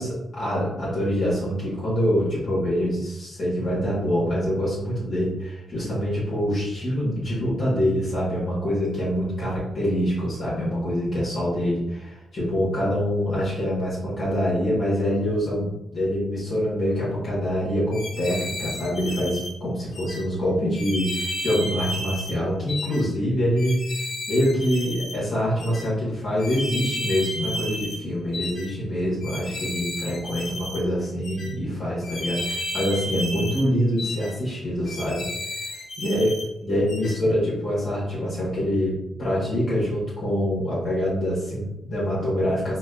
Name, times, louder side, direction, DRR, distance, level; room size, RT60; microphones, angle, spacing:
voice 1, 0.0-23.8 24.3-35.3 35.6-36.3 36.6-42.8, equal, 55° left, -8 dB, 1.5 m, -25 dB
sound 1, 17.9-19.5 19.9-20.2 20.7-22.4 22.7-23.0 23.6-25.2 25.6-25.8 26.4-28.0 28.3-28.7 29.2-30.8 31.2-31.5 32.0-33.7 34.0-34.3 34.9-36.5 36.9-37.2, left 1 dB, 75° left, 1.0 m, -33 dB
3.9 x 2.4 x 2.4 m, 0.91 s
cardioid pair, 60°, 0 cm